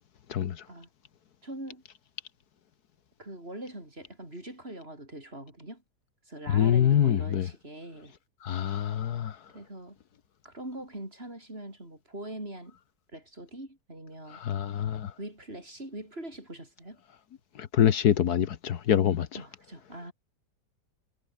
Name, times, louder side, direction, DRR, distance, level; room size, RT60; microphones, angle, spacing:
voice 1, 0.3-0.6 6.5-7.5 8.4-9.4 14.3-15.1 17.6-19.3, left 9 dB, 70° left, 1.5 m, -25 dB
voice 2, 1.4-1.8 3.2-5.8 6.3-8.1 9.5-10.0 10.4-12.8 13.1-14.4 15.2-17.0 19.3-20.1, right 1 dB, 35° right, 8.2 m, -42 dB
omnidirectional pair, 1.8 m